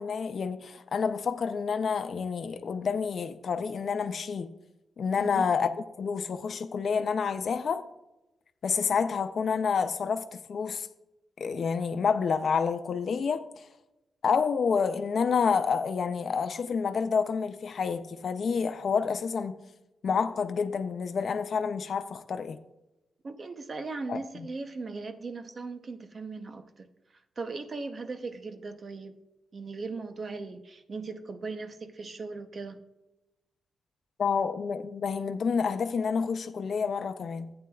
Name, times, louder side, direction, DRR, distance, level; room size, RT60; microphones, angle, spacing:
voice 1, 0.0-4.5 5.0-7.8 8.6-10.9 11.4-13.7 14.2-19.6 20.0-22.6 24.1-24.5 34.2-37.5, left 6 dB, 50° left, 0.4 m, -29 dB
voice 2, 23.2-26.9 27.4-29.2 29.5-32.8, right 3 dB, 35° right, 0.6 m, -38 dB
14.5 x 8.8 x 2.3 m
wide cardioid pair, 165°, 0 cm